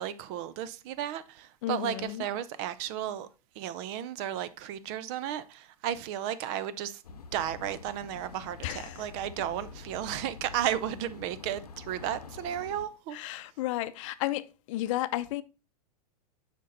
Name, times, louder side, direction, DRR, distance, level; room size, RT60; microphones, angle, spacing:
voice 1, 0.0-3.3 3.6-13.2, right 11 dB, 50° right, 0.8 m, -34 dB
voice 2, 1.6-2.3 8.6-9.1 13.1-15.4, left 15 dB, 55° left, 0.6 m, -33 dB
sound 1, 7.0-12.9, left 5 dB, 85° left, 0.9 m, -47 dB
7.5 x 5.2 x 3.9 m
hypercardioid pair, 105°, 19 cm